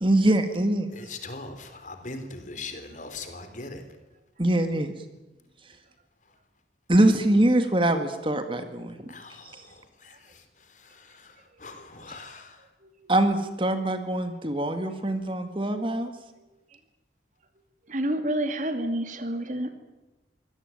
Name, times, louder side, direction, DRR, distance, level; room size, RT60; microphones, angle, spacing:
voice 1, 0.0-0.9 4.4-4.9 6.9-9.1 13.1-16.1, right 1 dB, 30° right, 8 dB, 1.9 m, -23 dB
voice 2, 0.9-3.8 6.2-6.4 9.1-12.7, left 3 dB, 45° left, 8 dB, 3.6 m, -42 dB
voice 3, 17.9-19.7, right 1 dB, 45° right, 8 dB, 2.5 m, -28 dB
25.0 x 17.5 x 9.2 m, 1.0 s
head